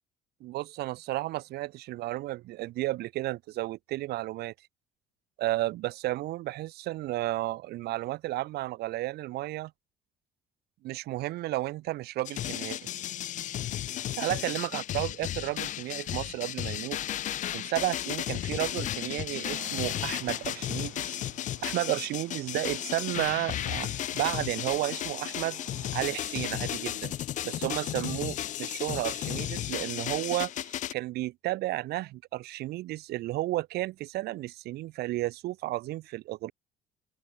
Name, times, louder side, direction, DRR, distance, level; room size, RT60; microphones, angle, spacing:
voice 1, 0.4-4.5 5.4-9.7 10.8-12.8 14.2-17.0 17.5-21.2 21.6-25.6 25.9-27.1 27.4-28.3 28.6-36.5, right 17 dB, 70° right, 0.6 m, -32 dB
sound 1, 12.2-30.9, left 12 dB, 50° left, 0.4 m, -34 dB
Traffic noise roadway noise, 19.4-26.3, right 21 dB, 90° right, 1.4 m, -52 dB
open air
cardioid pair, 110°, 17 cm